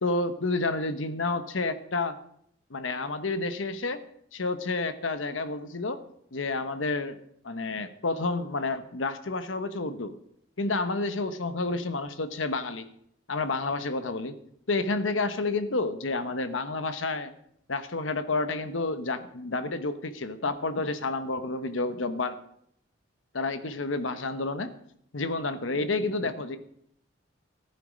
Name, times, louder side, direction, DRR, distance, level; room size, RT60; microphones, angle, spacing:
voice 1, 0.0-2.2 2.7-4.0 4.3-6.0 6.3-7.2 7.4-10.1 10.6-12.9 13.3-14.4 14.7-17.3 17.7-22.4 23.3-24.7 25.1-26.6, left 3 dB, 90° left, 11 dB, 1.1 m, -30 dB
15.0 x 10.5 x 5.2 m, 0.70 s
head